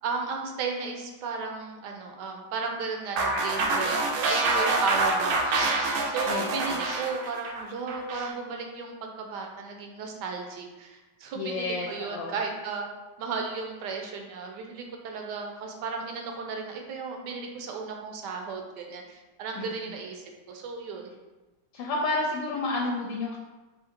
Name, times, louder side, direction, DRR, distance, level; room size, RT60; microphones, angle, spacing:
voice 1, 0.0-5.7 6.1-12.8 13.2-21.1, right 4 dB, 75° right, 2 dB, 1.1 m, -35 dB
sound 1, 3.2-8.3, right 2 dB, 90° right, 1.5 m, -26 dB
voice 2, 6.3-6.8 11.4-12.3 19.6-19.7 21.7-23.4, left 2 dB, 80° left, -2 dB, 1.3 m, -30 dB
3.8 x 2.7 x 4.2 m, 1.2 s
omnidirectional pair, 2.1 m